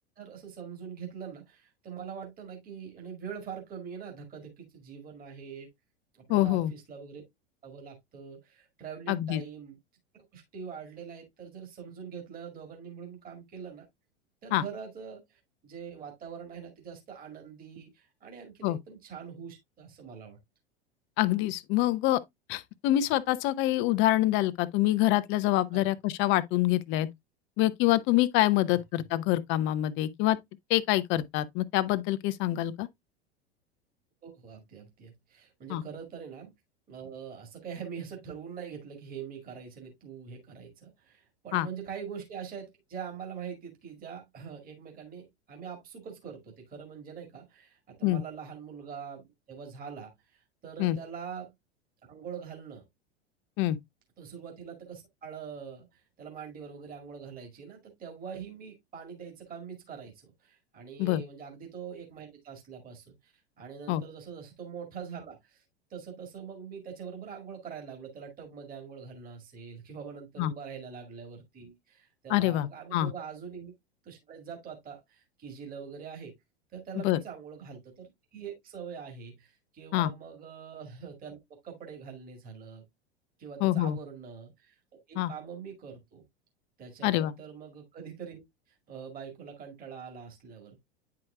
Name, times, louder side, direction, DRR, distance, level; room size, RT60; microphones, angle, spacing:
voice 1, 0.2-5.7 6.1-7.2 7.6-9.8 10.1-13.9 14.4-20.4 25.7-25.9 31.1-31.2 34.2-36.5 36.9-51.5 52.1-52.8 54.2-63.3 63.6-65.6 65.9-73.7 74.0-76.3 76.7-82.9 83.4-86.2 86.8-88.4 88.7-90.8, right 7 dB, 25° right, 2.0 m, -44 dB
voice 2, 6.3-6.7 9.1-9.4 14.5-14.6 18.6-18.8 21.2-22.2 22.5-27.1 27.6-30.4 30.7-32.9 35.7-35.8 41.5-41.7 48.0-48.2 50.8-51.0 53.6-53.8 61.0-61.2 63.9-64.0 70.4-70.5 72.3-73.1 77.0-77.2 79.9-80.1 83.6-84.0 85.2-85.3 87.0-87.3, left 15 dB, 35° left, 0.6 m, -26 dB
9.5 x 4.7 x 2.2 m
figure-of-eight pair, 85°, 33 cm